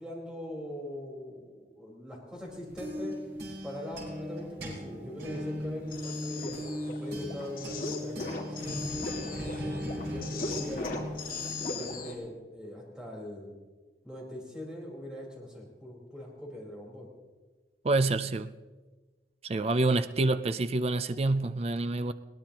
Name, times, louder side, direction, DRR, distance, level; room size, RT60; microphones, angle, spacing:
voice 1, 0.0-3.1 3.6-6.6 6.9-11.0 11.7-13.6 14.0-17.1, left 1 dB, 5° right, -4 dB, 4.3 m, -42 dB
sound 1, 2.4-12.1, equal, 75° right, 4.9 m, -38 dB
sound 2, 5.8-12.1, left 3 dB, 50° left, 2.2 m, -38 dB
voice 2, 17.8-18.5 19.4-22.1, right 2 dB, 35° right, 12 dB, 0.4 m, -27 dB
21.5 x 17.5 x 2.9 m, 1.3 s
head